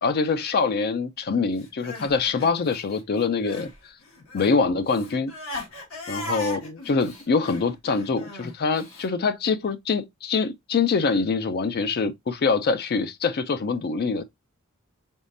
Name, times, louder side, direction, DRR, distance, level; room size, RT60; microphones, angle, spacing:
voice 1, 0.0-3.7 4.3-5.3 6.1-14.2, left 4 dB, 50° left, 0.4 m, -24 dB
Crying sobbing, 1.6-3.8 4.0-9.1, left 2 dB, 75° left, 1.7 m, -37 dB
4.0 x 3.6 x 2.5 m
head